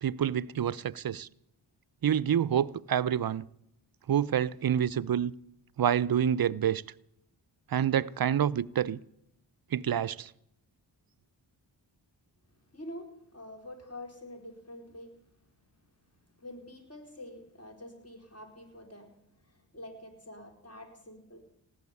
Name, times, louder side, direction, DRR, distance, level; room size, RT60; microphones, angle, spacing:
voice 1, 0.0-1.3 2.0-3.5 4.1-5.3 5.8-6.8 7.7-9.0 9.7-10.3, right 9 dB, 50° right, 0.6 m, -27 dB
voice 2, 12.6-15.2 16.1-21.5, left 1 dB, 30° left, 4.4 m, -47 dB
17.5 x 7.9 x 9.6 m
cardioid pair, 45°, 46 cm